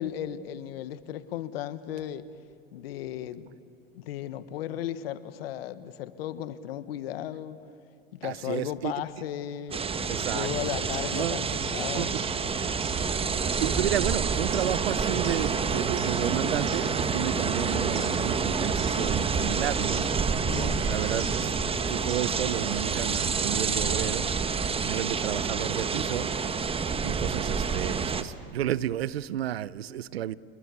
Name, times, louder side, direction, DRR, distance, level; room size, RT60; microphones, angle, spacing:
voice 1, 0.0-2.3 2.7-3.5 3.9-7.6 8.2-9.8 10.3-12.2 20.4-20.9, left 11 dB, 75° left, 1.4 m, -35 dB
voice 2, 8.2-8.9 10.1-10.5 11.1-11.4 12.0-12.2 13.6-20.1 20.5-21.5 21.9-24.3 24.8-26.3 27.0-30.3, right 12 dB, 90° right, 0.7 m, -32 dB
sound 1, 9.7-28.2, right 5 dB, 20° right, 1.2 m, -28 dB
sound 2, 9.7-23.9, right 4 dB, 45° right, 6.0 m, -40 dB
28.0 x 21.5 x 8.3 m
hypercardioid pair, 100°, 30 cm